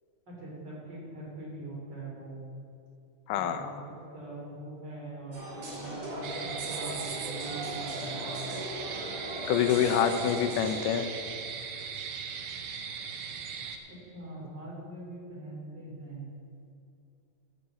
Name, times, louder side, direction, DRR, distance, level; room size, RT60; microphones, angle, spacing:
voice 1, 0.3-2.4 3.3-8.4 13.9-16.3, right 2 dB, 30° right, -5 dB, 3.7 m, -42 dB
voice 2, 3.3-3.9 9.5-11.1, left 9 dB, 80° left, 7 dB, 2.3 m, -26 dB
sound 1, 5.3-10.9, equal, 70° right, 4.5 m, -38 dB
sound 2, 6.2-13.8, right 6 dB, 90° right, 1.2 m, -38 dB
13.0 x 5.3 x 8.1 m, 2.6 s
omnidirectional pair, 3.8 m